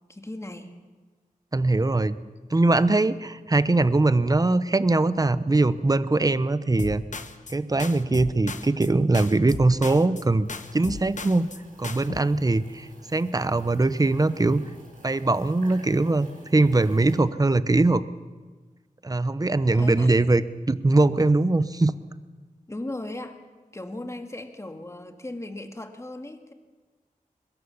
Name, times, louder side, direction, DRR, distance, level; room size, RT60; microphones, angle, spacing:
voice 1, 0.1-0.7 19.7-20.1 22.7-23.4 23.7-26.5, left 1 dB, 20° left, 6 dB, 2.1 m, -37 dB
voice 2, 1.5-2.2 2.5-7.0 7.5-10.5 10.7-11.5 11.8-14.6 15.0-18.0 19.0-20.4 20.7-21.9, right 2 dB, 25° right, 14 dB, 0.9 m, -21 dB
sound 1, 6.8-7.5 7.8-8.9 9.1-10.2 10.5-11.6 11.8-12.2, left 4 dB, 60° left, 1.2 m, -36 dB
sound 2, 10.4-17.2, right 1 dB, 75° right, 7.7 m, -52 dB
23.0 x 21.0 x 7.1 m, 1.3 s
wide cardioid pair, 100°, 14 cm